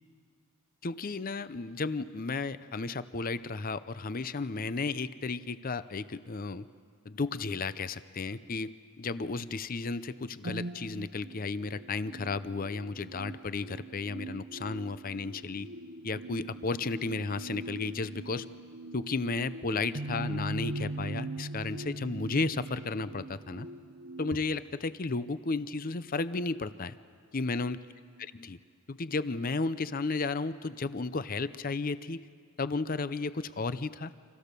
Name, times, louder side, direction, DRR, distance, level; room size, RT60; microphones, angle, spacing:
voice 1, 0.8-6.7 7.1-15.7 16.0-18.5 18.9-23.7 24.2-26.9 27.3-27.8 28.2-28.6 28.9-32.2 32.6-34.1, left 3 dB, 40° left, 14 dB, 0.6 m, -33 dB
sound 1, 10.4-24.4, right 2 dB, 55° right, 0.9 m, -41 dB
30.0 x 26.0 x 6.8 m, 2.1 s
head